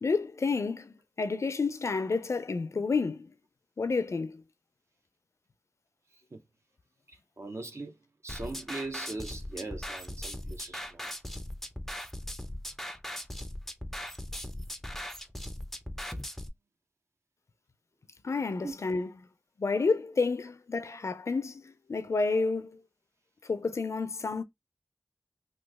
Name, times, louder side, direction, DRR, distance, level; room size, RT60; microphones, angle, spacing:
voice 1, 0.0-3.3 3.8-4.4 18.2-19.1 19.6-22.8 23.5-24.4, left 4 dB, 65° left, 0.4 m, -30 dB
voice 2, 7.1-7.9 8.2-11.1 18.6-18.7, right 2 dB, 60° right, 0.8 m, -40 dB
sound 1, 8.3-16.5, left 1 dB, 5° left, 0.4 m, -39 dB
3.0 x 2.2 x 3.4 m
wide cardioid pair, 65°, 5 cm